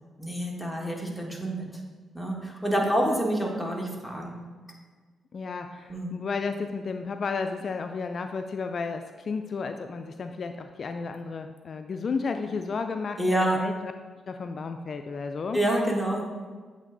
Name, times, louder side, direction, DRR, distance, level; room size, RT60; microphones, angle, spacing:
voice 1, 0.2-1.6 2.1-4.3 5.9-6.2 13.2-13.6 15.5-16.2, right 1 dB, ahead, -2 dB, 1.5 m, -27 dB
voice 2, 5.3-13.9 14.3-15.6, left 4 dB, 55° left, 7 dB, 0.3 m, -33 dB
8.1 x 3.3 x 3.9 m, 1.4 s
supercardioid pair, 60°, 0 cm